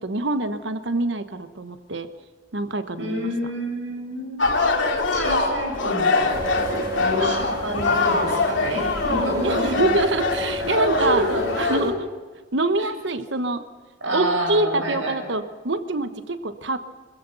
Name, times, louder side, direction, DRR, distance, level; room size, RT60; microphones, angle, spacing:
voice 1, 0.0-2.1 2.5-3.3 9.4-11.3 11.6-11.9 12.5-13.6 14.1-16.8, right 2 dB, 70° right, 10 dB, 1.1 m, -25 dB
voice 2, 3.0-4.4 5.1-6.4 7.0-9.9 10.8-11.8 12.8-12.9 14.0-15.2, equal, 85° right, 1 dB, 7.9 m, -27 dB
sound 1, 4.4-11.8, left 3 dB, 80° left, 2.5 m, -24 dB
sound 2, 6.3-11.9, equal, 20° right, 2.1 m, -32 dB
24.5 x 15.5 x 6.9 m, 1.4 s
head